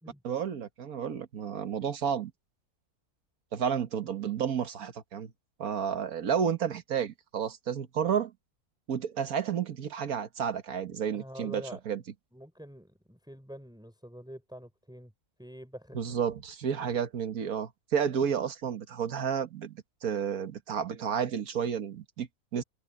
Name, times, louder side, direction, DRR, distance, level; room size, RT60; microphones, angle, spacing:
voice 1, 0.2-2.3 3.5-5.3 5.6-8.3 8.9-12.0 15.9-22.6, right 7 dB, 70° right, 1.7 m, -31 dB
voice 2, 11.1-11.8 12.3-15.1 15.4-16.0, equal, 5° right, 4.6 m, -46 dB
open air
omnidirectional pair, 1.6 m